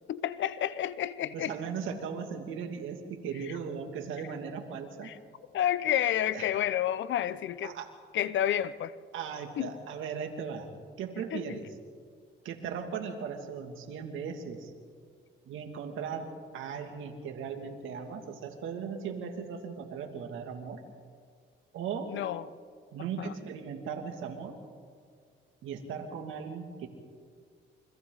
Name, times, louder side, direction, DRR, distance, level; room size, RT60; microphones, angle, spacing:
voice 1, 0.1-1.5 3.4-3.5 5.0-5.2 5.5-7.7 8.1-9.0 9.6-9.7 11.3-11.6 22.1-22.5 23.0-23.3, left 11 dB, 70° left, 15 dB, 0.8 m, -30 dB
voice 2, 1.3-5.1 6.3-6.5 7.6-7.9 9.1-11.6 12.4-14.7 15.5-16.3 16.5-20.8 21.7-22.2 22.9-24.6 25.6-26.9, right 6 dB, 85° right, 4 dB, 2.6 m, -38 dB
29.0 x 25.0 x 4.1 m, 2.1 s
cardioid pair, 90°, 20 cm